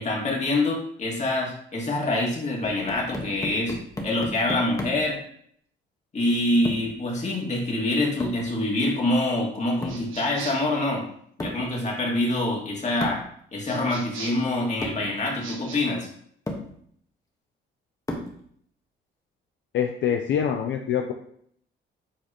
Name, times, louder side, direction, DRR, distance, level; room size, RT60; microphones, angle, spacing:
voice 1, 0.0-3.7 4.0-5.2 6.1-11.0 11.4-13.2 13.5-16.1, left 2 dB, 35° left, -2 dB, 2.2 m, -25 dB
sound 1, 2.6-5.1 6.6-7.0 8.2-8.5 9.8-10.1 11.4-11.7 13.0-13.3 14.3-14.4 14.8-15.1 15.9-16.0 16.5-16.7 18.1-18.4, left 1 dB, 15° left, 1.3 m, -34 dB
sound 2, 9.9-10.7 13.6-14.5 15.3-15.8, right 4 dB, 80° right, 1.5 m, -39 dB
voice 2, 19.7-21.1, left 8 dB, 70° left, 4 dB, 0.6 m, -25 dB
7.6 x 4.2 x 3.0 m, 0.65 s
cardioid pair, 90°, 20 cm